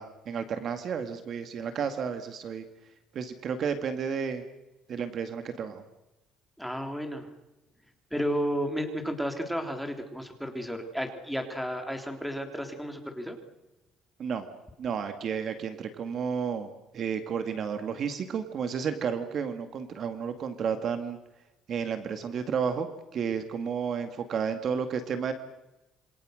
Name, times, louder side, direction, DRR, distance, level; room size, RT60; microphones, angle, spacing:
voice 1, 0.0-2.6 3.1-4.4 4.9-5.8 14.2-14.5 14.8-21.2 21.7-22.9 23.1-25.3, right 6 dB, 45° right, 8 dB, 2.2 m, -32 dB
voice 2, 6.6-7.3 8.1-13.4, equal, ahead, 5 dB, 3.5 m, -32 dB
27.5 x 25.5 x 6.6 m, 0.97 s
cardioid pair, 140°, 0 cm